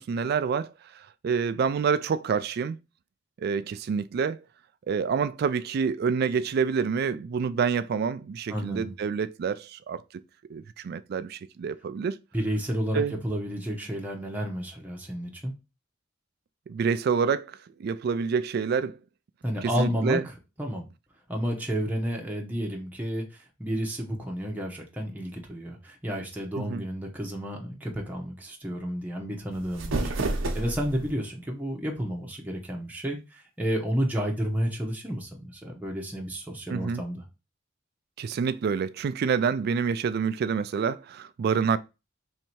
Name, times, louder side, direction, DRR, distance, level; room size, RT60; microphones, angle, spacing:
voice 1, 0.0-2.8 3.4-4.4 4.9-10.0 10.5-12.2 12.9-13.2 16.7-19.0 19.6-20.2 26.6-26.8 36.7-37.0 38.2-41.8, right 6 dB, 55° right, 0.3 m, -27 dB
voice 2, 8.5-8.9 12.3-15.5 19.4-20.2 20.6-20.9 21.3-37.2, equal, 10° right, 0.8 m, -31 dB
sound 1, 29.5-31.1, right 2 dB, 90° right, 0.7 m, -30 dB
3.2 x 2.8 x 4.4 m
head